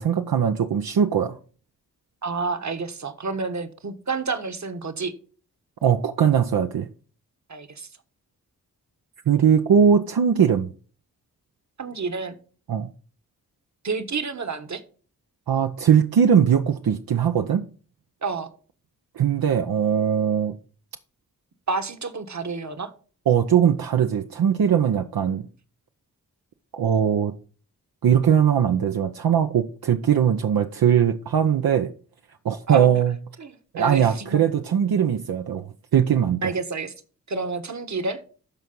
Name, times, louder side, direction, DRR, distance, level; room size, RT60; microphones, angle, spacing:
voice 1, 0.0-1.4 5.8-6.9 9.3-10.7 12.7-12.9 15.5-17.7 19.1-20.6 23.3-25.4 26.7-27.3 28.0-31.9 32.4-33.2 33.7-36.5, right 8 dB, 80° right, 0.8 m, -20 dB
voice 2, 2.2-5.1 7.5-7.9 11.8-12.4 13.8-14.8 18.2-18.5 21.7-22.9 32.7-33.0 33.4-34.4 36.4-36.9 37.3-38.2, right 4 dB, 50° right, 1.4 m, -29 dB
12.5 x 4.6 x 5.4 m
cardioid pair, 50°, 36 cm